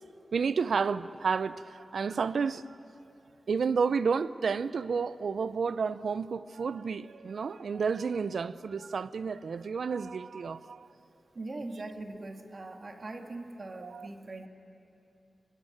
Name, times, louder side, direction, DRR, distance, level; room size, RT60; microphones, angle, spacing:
voice 1, 0.3-2.8 3.5-10.9 13.8-14.1, right 5 dB, 80° right, 15 dB, 0.6 m, -31 dB
voice 2, 11.3-14.5, right 2 dB, 50° right, 4 dB, 2.1 m, -41 dB
24.0 x 22.0 x 8.7 m, 2.8 s
cardioid pair, 70°, 0 cm